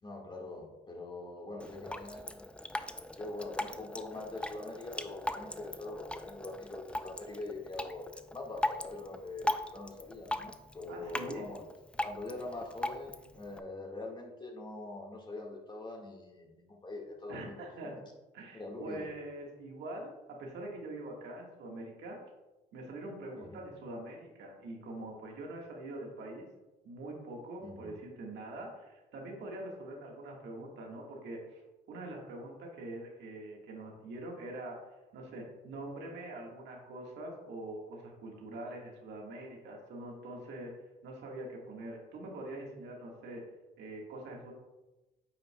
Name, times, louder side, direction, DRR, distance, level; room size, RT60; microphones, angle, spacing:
voice 1, 0.0-11.6 12.0-17.6 18.5-19.1 23.4-23.6 27.6-27.9, left 2 dB, 25° left, 0 dB, 1.6 m, -43 dB
Drip, 1.6-13.6, left 1 dB, 5° left, 0.4 m, -39 dB
voice 2, 10.9-11.5 17.3-18.0 18.3-22.2 22.7-26.5 26.8-31.6 31.9-34.8 35.1-40.7 41.0-43.4 43.8-44.5, right 1 dB, 75° right, 0 dB, 1.5 m, -44 dB
8.7 x 5.8 x 2.2 m, 1.1 s
cardioid pair, 80°, 18 cm